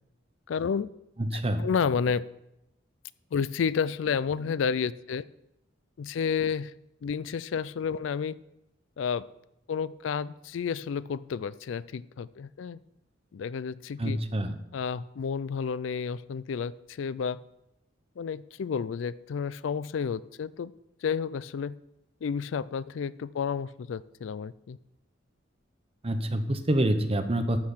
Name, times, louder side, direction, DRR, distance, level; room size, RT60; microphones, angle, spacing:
voice 1, 0.5-0.9 1.3-2.2 3.3-5.3 6.0-6.7 7.0-8.4 9.0-9.2 9.7-12.8 13.3-14.2 14.7-17.4 18.2-20.7 21.0-21.8 22.2-24.8, left 6 dB, 75° left, 18 dB, 0.4 m, -31 dB
voice 2, 1.2-1.6 14.0-14.5 26.0-27.6, right 1 dB, 30° right, 8 dB, 0.9 m, -27 dB
12.0 x 6.7 x 5.7 m, 0.86 s
head